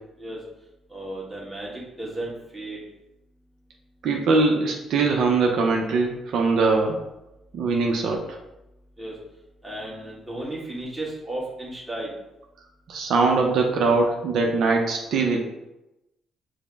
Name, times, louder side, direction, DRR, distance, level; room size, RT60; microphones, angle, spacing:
voice 1, 0.9-2.8 9.0-9.1 9.6-12.1, right 1 dB, 10° right, -5 dB, 1.4 m, -34 dB
voice 2, 4.0-7.0 7.5-8.2 12.9-15.4, right 3 dB, 75° right, 1 dB, 0.5 m, -22 dB
4.9 x 2.0 x 3.3 m, 0.95 s
cardioid pair, 90°, 0 cm